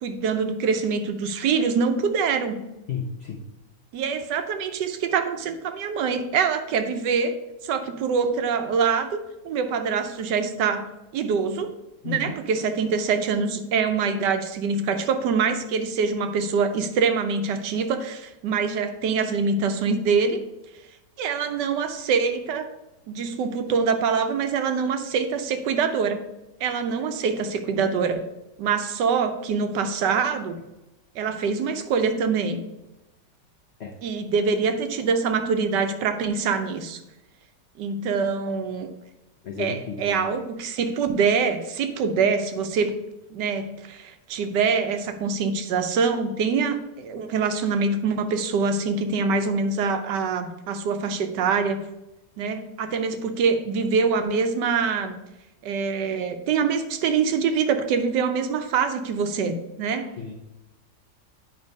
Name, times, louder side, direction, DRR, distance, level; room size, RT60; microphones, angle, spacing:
voice 1, 0.0-2.7 3.9-9.1 9.4-11.7 12.0-20.4 21.2-22.7 23.1-26.2 26.6-28.2 28.6-30.6 31.2-32.6 34.0-37.0 37.8-38.9 39.6-43.0 43.3-51.8 52.4-55.2 55.6-60.1, right 5 dB, 75° right, 8 dB, 1.3 m, -24 dB
voice 2, 2.9-3.4 12.0-12.3 33.8-33.9 39.4-40.2 60.2-60.3, left 6 dB, 70° left, 2 dB, 0.6 m, -32 dB
9.0 x 3.2 x 5.2 m, 0.95 s
omnidirectional pair, 2.0 m